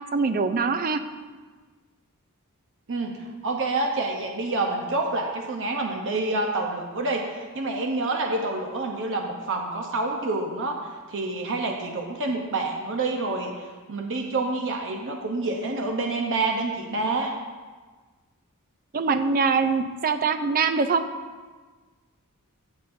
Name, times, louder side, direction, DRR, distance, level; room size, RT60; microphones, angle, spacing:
voice 1, 0.1-1.0 18.9-21.0, right 5 dB, 40° right, 9 dB, 0.5 m, -23 dB
voice 2, 2.9-17.3, right 2 dB, 60° right, 1 dB, 0.9 m, -28 dB
15.0 x 7.3 x 2.7 m, 1.4 s
head